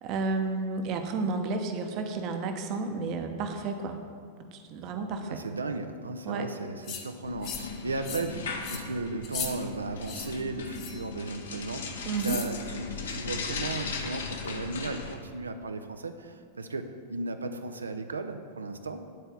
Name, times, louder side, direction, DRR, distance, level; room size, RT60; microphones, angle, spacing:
voice 1, 0.0-4.0 4.5-5.4 6.3-6.5 12.1-12.4, right 3 dB, 40° right, 5 dB, 0.9 m, -31 dB
voice 2, 5.3-19.0, right 3 dB, 75° right, 7 dB, 0.6 m, -35 dB
sound 1, 6.8-7.0 7.4-7.7 8.0-8.3 8.6-8.8 9.2-9.5 10.0-10.3 10.7-11.0 12.2-12.5, left 7 dB, 40° left, 1.0 m, -37 dB
sound 2, 7.2-15.1, left 4 dB, 60° left, 0.9 m, -37 dB
9.4 x 4.4 x 6.8 m, 2.1 s
figure-of-eight pair, 95°, 0 cm